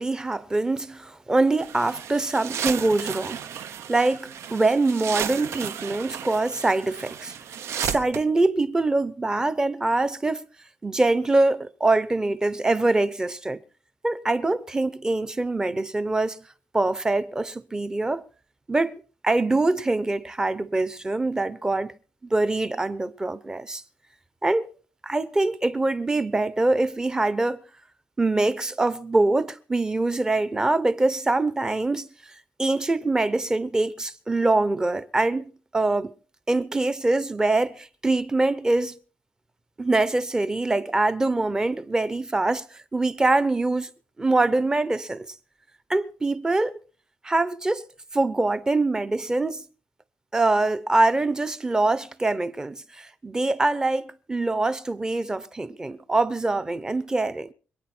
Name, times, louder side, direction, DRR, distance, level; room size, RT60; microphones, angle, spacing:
voice 1, 0.0-3.4 3.9-7.3 7.8-10.4 10.8-13.6 14.0-16.4 16.7-18.2 18.7-21.9 22.2-23.8 24.4-24.7 25.0-27.6 28.2-32.1 32.6-36.1 36.5-39.0 39.8-42.6 42.9-43.9 44.2-45.2 45.9-46.8 47.2-47.9 48.1-49.6 50.3-57.5, right 2 dB, 15° right, 0.7 m, -24 dB
sound 1, 1.6-8.2, right 8 dB, 85° right, 1.0 m, -34 dB
26.0 x 9.2 x 4.4 m
wide cardioid pair, 175°, 5 cm